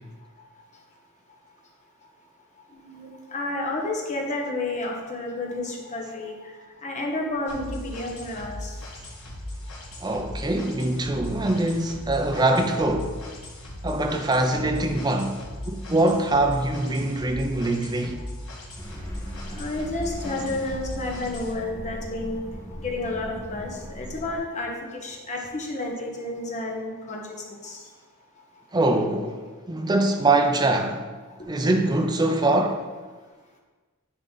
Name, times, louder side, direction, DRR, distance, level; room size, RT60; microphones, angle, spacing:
voice 1, 2.7-6.5 6.8-8.8 19.5-22.4 22.8-27.2 27.5-27.9, left 2 dB, 30° left, 1.1 m, -31 dB
sound 1, 7.5-21.5, left 1 dB, 65° left, 1.5 m, -38 dB
voice 2, 10.0-13.2 13.8-18.2 28.7-31.1 31.5-32.8, right 2 dB, 20° right, 0.5 m, -23 dB
sound 2, 18.8-24.4, equal, 15° left, 1.0 m, -38 dB
10.0 x 3.8 x 4.0 m
head